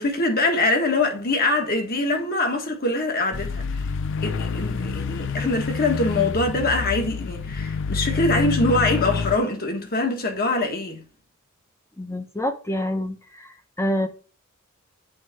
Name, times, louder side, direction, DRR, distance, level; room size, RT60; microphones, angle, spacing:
voice 1, 0.0-3.8 4.2-11.0, left 2 dB, 45° left, 1.8 m, -23 dB
sound 1, 3.3-9.4, left 5 dB, 60° left, 0.5 m, -27 dB
voice 2, 12.0-13.2 13.8-14.1, left 1 dB, 15° left, 1.0 m, -26 dB
7.8 x 4.1 x 4.4 m
head